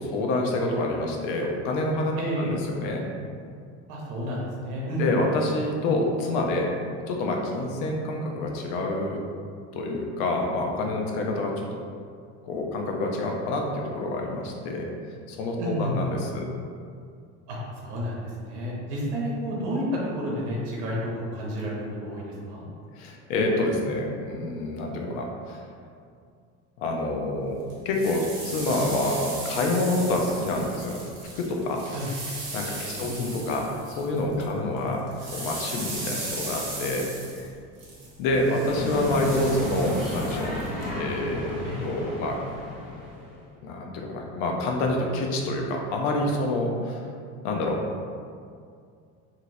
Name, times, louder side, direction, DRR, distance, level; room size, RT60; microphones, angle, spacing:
voice 1, 0.0-3.1 5.0-6.7 7.1-9.2 9.7-11.5 12.5-14.9 15.3-16.5 23.0-25.6 26.8-31.0 31.4-31.8 32.5-33.7 34.0-37.1 37.3-37.5 38.2-40.5 41.0-42.4 43.6-47.0 47.4-47.8, left 2 dB, 80° left, 1 dB, 0.6 m, -27 dB
voice 2, 2.2-2.5 3.9-5.0 15.6-15.9 17.5-19.8 20.1-22.6 31.9-32.1 32.9-33.2 41.6-41.8, equal, 85° right, -4 dB, 0.8 m, -31 dB
sound 1, 27.7-34.5 34.8-40.9, right 2 dB, 50° right, 1.2 m, -37 dB
sound 2, 38.6-43.5, left 1 dB, 30° left, 1.0 m, -33 dB
2.9 x 2.8 x 2.7 m, 2.2 s
supercardioid pair, 115°, 33 cm